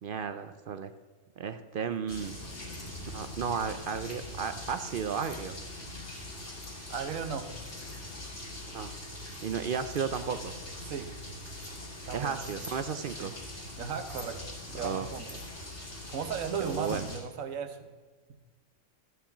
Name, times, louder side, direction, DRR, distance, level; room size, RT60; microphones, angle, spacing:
voice 1, 0.0-0.9 1.4-2.4 3.1-5.6 8.7-8.9 9.4-10.6 12.1-13.3 14.8-15.1 16.6-17.1, right 6 dB, 55° right, 10 dB, 0.6 m, -34 dB
Keys jangling, 1.9-3.0 3.7-4.3 4.9-5.5 6.1-6.7 7.6-8.5 8.9-10.4 11.0-11.8 12.3-12.8 13.9-14.5 15.1-17.2, left 2 dB, 15° left, 1.0 m, -54 dB
sound 1, 2.1-17.2, left 1 dB, 60° left, 3.1 m, -42 dB
voice 2, 6.9-7.5 10.8-11.1 12.1-12.4 13.2-13.3 13.8-15.3 16.1-17.9, right 6 dB, 80° right, 9 dB, 1.3 m, -36 dB
14.5 x 5.8 x 7.1 m, 1.3 s
omnidirectional pair, 1.4 m